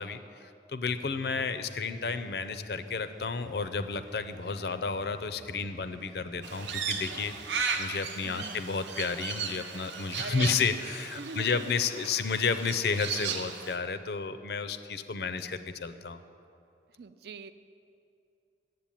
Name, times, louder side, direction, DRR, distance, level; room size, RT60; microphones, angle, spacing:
voice 1, 0.0-16.2, left 5 dB, 60° left, 11 dB, 0.5 m, -32 dB
sound 1, 0.9-7.7, left 1 dB, ahead, 0.3 m, -50 dB
sound 2, 3.0-12.8, right 1 dB, 20° right, 0.7 m, -59 dB
Crow, 6.4-13.8, right 5 dB, 85° right, 0.8 m, -36 dB
voice 2, 8.2-8.8 10.2-10.8 11.1-12.4 16.9-17.5, right 4 dB, 60° right, 12 dB, 0.4 m, -43 dB
8.5 x 7.8 x 9.0 m, 2.6 s
head